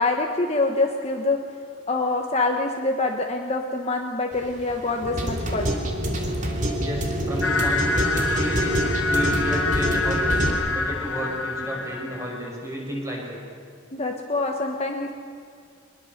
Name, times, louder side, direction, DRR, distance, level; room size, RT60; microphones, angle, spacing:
voice 1, 0.0-1.4 1.9-5.7 13.9-15.1, left 3 dB, 30° left, 2 dB, 1.3 m, -25 dB
sound 1, 4.3-10.5, equal, 35° right, 2.7 m, -26 dB
voice 2, 6.8-8.8 9.1-13.4, equal, 15° right, -2 dB, 5.9 m, -32 dB
sound 2, 7.4-12.5, left 3 dB, 70° left, 1.4 m, -26 dB
24.0 x 21.0 x 6.7 m, 2.4 s
head